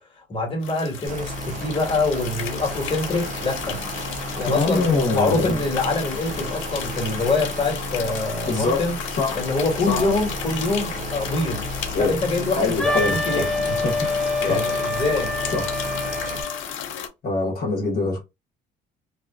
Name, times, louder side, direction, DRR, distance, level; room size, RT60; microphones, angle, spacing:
voice 1, 0.3-3.8 4.4-8.9 9.3-11.6 12.0-13.5 14.4-15.3, left 3 dB, 25° left, 1.4 m, -25 dB
sound 1, 0.6-17.1, left 9 dB, 70° left, 0.6 m, -34 dB
sound 2, 1.1-16.4, right 1 dB, 35° right, 0.6 m, -33 dB
voice 2, 4.5-5.6 8.5-8.8 9.1-9.4 9.9-10.1 11.9-12.2 12.6-14.0 14.5-14.7 15.5-15.8 17.2-18.2, left 3 dB, 50° left, 1.1 m, -24 dB
Wind instrument woodwind instrument, 12.8-16.6, left 2 dB, 5° left, 0.7 m, -26 dB
2.8 x 2.3 x 2.3 m
supercardioid pair, 70°, 21 cm